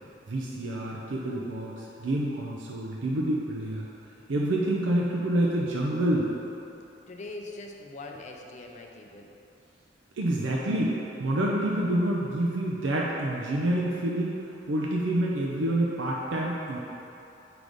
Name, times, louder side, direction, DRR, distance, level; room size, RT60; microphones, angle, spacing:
voice 1, 0.3-3.9 4.3-6.3 10.2-16.8, right 1 dB, 80° right, -3 dB, 0.6 m, -28 dB
voice 2, 6.8-9.3, left 2 dB, 40° left, 1 dB, 0.5 m, -43 dB
4.9 x 3.9 x 4.9 m, 2.9 s
head